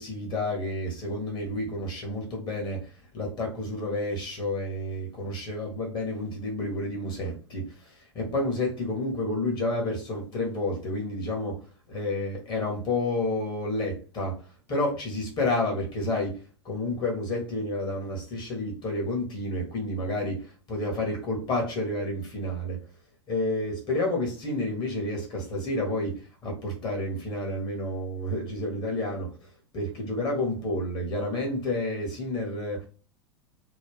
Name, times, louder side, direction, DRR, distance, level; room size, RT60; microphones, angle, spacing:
voice 1, 0.0-2.9 3.1-16.4 16.6-22.8 23.3-29.5 29.7-32.9, left 1 dB, 30° left, 1.4 m, -30 dB
3.1 x 2.2 x 3.4 m
figure-of-eight pair, 90°, 15 cm